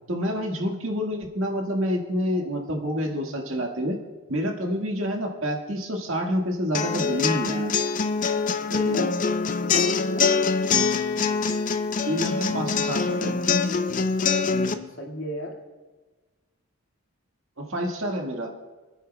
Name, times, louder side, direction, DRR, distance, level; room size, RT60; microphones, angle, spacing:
voice 1, 0.1-4.0 4.3-7.7 8.7-9.1 12.1-13.4 17.6-18.5, equal, 70° right, 2 dB, 1.7 m, -28 dB
sound 1, 6.7-14.7, left 5 dB, 40° left, 0.5 m, -24 dB
voice 2, 9.6-10.3 14.2-15.6, left 1 dB, 60° left, 0 dB, 2.0 m, -35 dB
24.0 x 9.9 x 2.3 m, 1.3 s
head